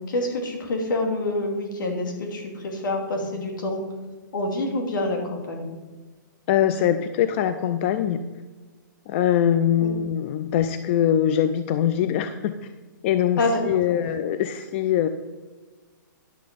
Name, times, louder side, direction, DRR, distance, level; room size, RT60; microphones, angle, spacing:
voice 1, 0.0-3.8 4.3-5.7 9.8-9.9 13.4-13.6 13.9-14.0, left 2 dB, 70° left, 2 dB, 2.6 m, -27 dB
voice 2, 6.5-8.2 9.1-12.7 13.0-15.1, left 10 dB, 35° left, 10 dB, 0.5 m, -22 dB
10.5 x 6.5 x 5.2 m, 1.3 s
hypercardioid pair, 145°, 11 cm